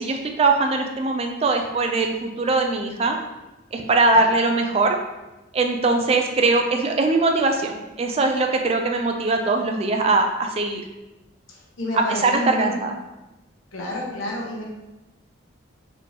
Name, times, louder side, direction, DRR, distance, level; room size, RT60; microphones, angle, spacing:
voice 1, 0.0-3.2 3.7-5.0 5.5-10.8 12.2-12.9, right 3 dB, 30° right, 3 dB, 0.3 m, -21 dB
voice 2, 4.1-4.4 11.5-12.8 13.7-14.6, equal, 85° left, -3 dB, 1.0 m, -29 dB
4.1 x 2.8 x 3.2 m, 1.0 s
head